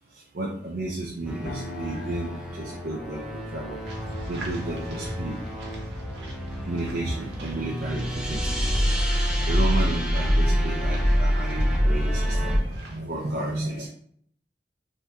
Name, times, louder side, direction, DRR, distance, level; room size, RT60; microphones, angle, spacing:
voice 1, 0.3-3.8 4.3-5.4 6.6-8.7 9.2-13.9, right 2 dB, 60° right, -2 dB, 0.5 m, -32 dB
sound 1, 1.3-12.6, equal, 5° right, 0.5 m, -26 dB
sound 2, 1.4-11.2, left 2 dB, 70° left, 0.5 m, -47 dB
sound 3, 3.8-13.0, equal, 85° right, 0.9 m, -39 dB
3.6 x 2.2 x 2.7 m, 0.63 s
head